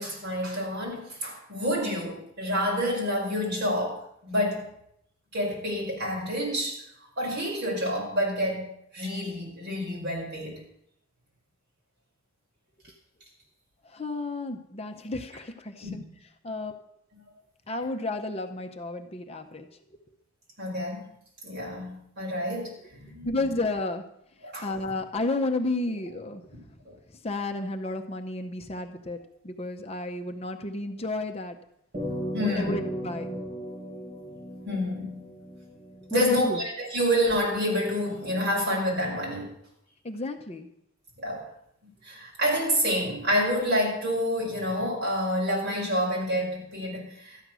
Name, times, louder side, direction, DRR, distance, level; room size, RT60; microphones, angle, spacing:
voice 1, 0.0-4.7 5.3-6.8 7.2-10.5 15.8-16.0 20.6-21.0 21.4-23.3 24.4-24.7 26.9-27.0 32.3-32.7 34.7-35.2 36.1-39.5 41.2-41.4 41.8-47.4, equal, 55° right, -3 dB, 5.3 m, -28 dB
voice 2, 13.8-16.0 16.4-16.8 17.7-20.0 23.2-24.0 24.6-26.4 27.2-29.2 29.4-31.6 32.4-33.3 36.1-36.6 40.0-40.7, left 2 dB, 30° left, 5 dB, 0.7 m, -32 dB
sound 1, 31.9-36.6, equal, 30° right, 6.3 m, -36 dB
13.0 x 9.4 x 6.2 m, 0.76 s
head